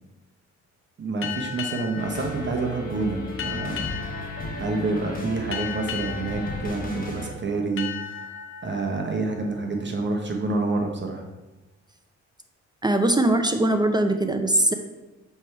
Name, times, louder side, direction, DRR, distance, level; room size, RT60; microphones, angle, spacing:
voice 1, 1.0-3.9 4.6-8.3 8.6-11.2, right 3 dB, 40° right, 2 dB, 1.0 m, -28 dB
sound 1, 1.2-10.5, left 8 dB, 45° left, 0.8 m, -37 dB
sound 2, 2.0-7.3, left 2 dB, 30° left, 1.4 m, -34 dB
voice 2, 12.8-14.7, right 1 dB, 15° right, 6 dB, 0.5 m, -21 dB
7.5 x 3.4 x 4.5 m, 1.1 s
cardioid pair, 90°, 30 cm